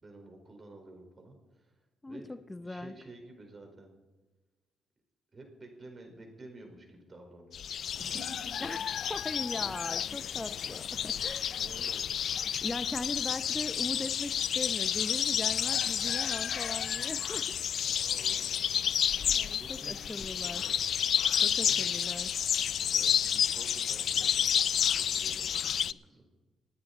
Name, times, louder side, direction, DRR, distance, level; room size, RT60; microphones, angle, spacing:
voice 1, 0.0-3.9 5.3-8.5 11.5-12.0 18.0-19.1 19.5-20.8 21.6-21.9 22.9-26.3, right 2 dB, 35° right, 3 dB, 4.9 m, -51 dB
voice 2, 2.0-2.9 8.6-11.6 12.6-17.5 17.9-18.1 19.2-20.6 21.4-22.3, left 2 dB, 15° left, 10 dB, 0.6 m, -39 dB
sound 1, 7.5-25.9, left 9 dB, 60° left, 0.4 m, -30 dB
27.5 x 9.6 x 4.3 m, 1.2 s
cardioid pair, 90°, 0 cm